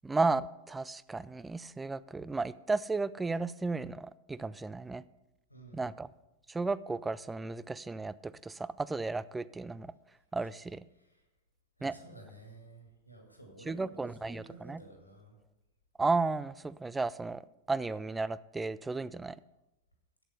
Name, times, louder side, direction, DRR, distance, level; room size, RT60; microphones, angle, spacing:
voice 1, 0.0-5.0 5.7-6.1 6.5-9.9 10.3-10.8 11.8-11.9 13.7-14.8 16.0-17.4 17.7-19.4, right 3 dB, 10° right, 18 dB, 0.3 m, -34 dB
voice 2, 5.5-6.0 10.4-10.5 10.9-11.2 11.8-15.4, right 2 dB, 85° left, 2 dB, 2.0 m, -53 dB
8.0 x 8.0 x 5.7 m, 0.95 s
figure-of-eight pair, 90°, 0 cm